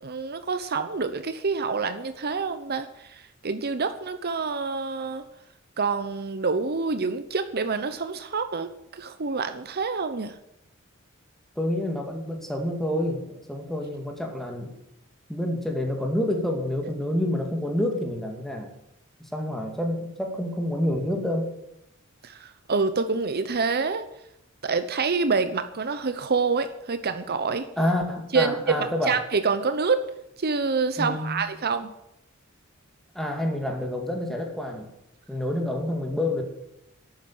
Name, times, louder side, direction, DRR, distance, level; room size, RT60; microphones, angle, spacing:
voice 1, 0.0-5.2 5.8-10.3 22.2-24.0 24.6-27.7 28.3-30.0 30.4-31.9, right 4 dB, 50° right, 10 dB, 0.9 m, -27 dB
voice 2, 11.6-14.7 15.3-18.7 19.2-21.5 27.8-29.2 31.0-31.4 33.1-34.9 35.3-36.4, left 1 dB, ahead, 2 dB, 2.7 m, -28 dB
12.0 x 9.1 x 9.3 m, 0.81 s
head